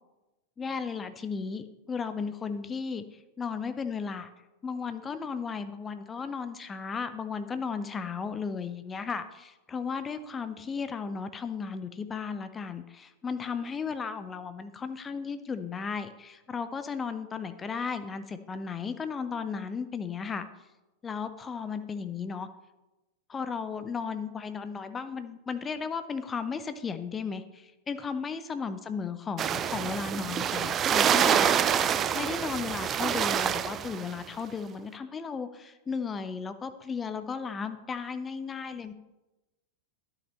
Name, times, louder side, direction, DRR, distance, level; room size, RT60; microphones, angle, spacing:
voice 1, 0.6-3.0 3.4-4.3 4.6-20.5 21.0-22.5 23.3-31.5 32.1-38.9, left 5 dB, 20° left, 11 dB, 0.6 m, -35 dB
sound 1, 29.4-34.1, right 9 dB, 25° right, 0.3 m, -26 dB
10.5 x 5.9 x 4.1 m, 1.0 s
figure-of-eight pair, 90°, 0 cm